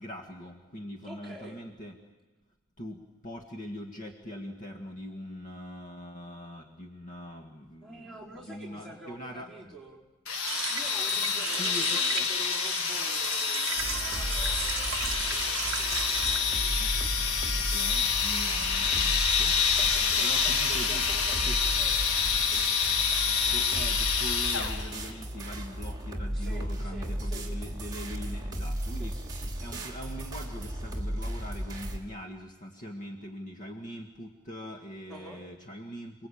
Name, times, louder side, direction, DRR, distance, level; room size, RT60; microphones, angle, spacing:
voice 1, 0.0-2.0 2.8-9.5 11.4-12.3 16.8-16.9 17.3-19.7 20.2-21.0 21.5-21.6 23.5-29.1 29.6-36.3, equal, 40° left, 3 dB, 1.8 m, -42 dB
voice 2, 1.0-1.6 7.8-10.0 10.7-17.1 19.8-22.5 26.3-27.5 28.9-29.7 35.1-35.4, right 2 dB, 5° left, -3 dB, 4.9 m, -48 dB
sound 1, 10.3-25.0, left 6 dB, 75° left, 1.9 m, -27 dB
sound 2, 10.4-16.4, right 10 dB, 70° right, 0.9 m, -36 dB
sound 3, 13.8-32.0, equal, 20° right, 2.8 m, -35 dB
28.5 x 20.0 x 8.7 m, 1.2 s
head